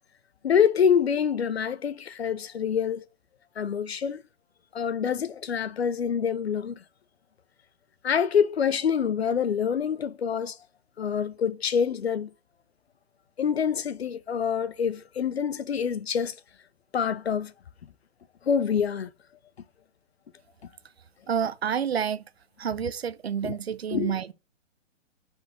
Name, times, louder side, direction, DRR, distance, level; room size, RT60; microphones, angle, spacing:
voice 1, 0.4-3.0 3.6-4.2 4.7-6.8 8.0-10.6 11.0-12.3 13.4-16.3 16.9-17.5 18.5-19.1 23.4-23.6 23.9-24.1, left 7 dB, 55° left, 0.6 m, -26 dB
voice 2, 21.3-22.2 22.6-24.3, right 7 dB, 55° right, 0.7 m, -29 dB
6.2 x 5.4 x 6.3 m
hypercardioid pair, 180°, 38 cm